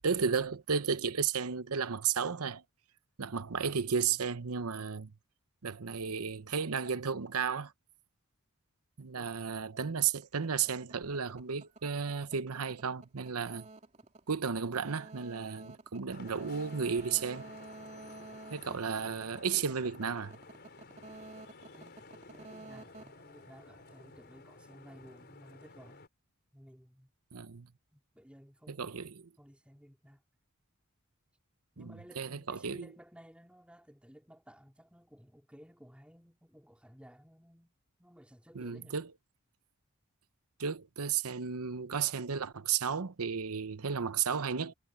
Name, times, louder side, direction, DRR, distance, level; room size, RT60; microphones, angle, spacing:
voice 1, 0.0-2.6 3.2-5.1 5.6-7.7 9.0-13.7 14.3-17.5 18.5-20.4 27.3-27.7 28.7-29.2 31.8-31.9 32.2-32.9 38.5-39.1 40.6-44.7, right 6 dB, 85° right, 0.9 m, -33 dB
sound 1, 10.2-24.1, right 2 dB, 35° right, 3.0 m, -51 dB
Vehicle horn car horn honking / Traffic noise roadway noise, 16.1-26.1, left 3 dB, 50° left, 4.7 m, -53 dB
voice 2, 21.7-26.0 26.5-27.1 27.9-29.0 29.4-30.2 31.7-37.7 38.0-39.0, equal, 5° right, 3.2 m, -56 dB
head